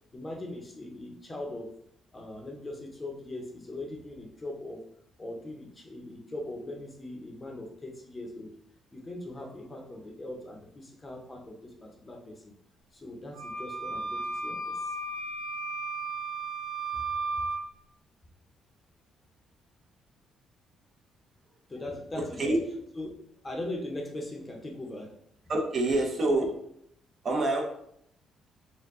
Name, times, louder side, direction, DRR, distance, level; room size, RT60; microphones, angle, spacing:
voice 1, 0.1-1.7 2.1-4.8 5.2-8.6 8.9-12.6 12.9-15.0 17.3-17.5 21.7-22.5 23.0-23.1 23.4-25.2, left 1 dB, 20° left, 2 dB, 0.7 m, -40 dB
Wind instrument woodwind instrument, 13.3-17.6, right 3 dB, 75° right, 0.8 m, -34 dB
voice 2, 22.1-22.6 25.5-26.5 27.2-27.6, right 2 dB, 45° right, 0 dB, 0.8 m, -26 dB
4.5 x 2.2 x 3.6 m, 0.70 s
cardioid pair, 110°, 0 cm